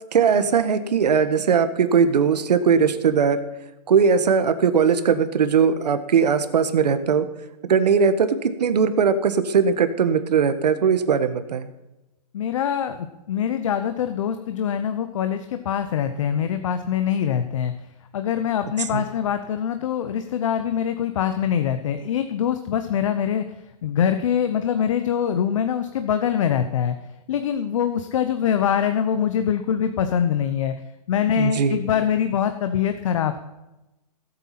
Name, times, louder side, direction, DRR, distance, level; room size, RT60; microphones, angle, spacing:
voice 1, 0.1-3.4 3.9-7.3 7.6-11.7 18.9-19.0 31.4-31.8, right 6 dB, 80° right, 10 dB, 1.5 m, -19 dB
voice 2, 12.3-17.7 18.1-23.4 23.8-26.9 27.3-30.7 31.1-33.4, left 8 dB, 50° left, 8 dB, 0.9 m, -24 dB
17.5 x 8.1 x 5.9 m, 0.99 s
hypercardioid pair, 165°, 21 cm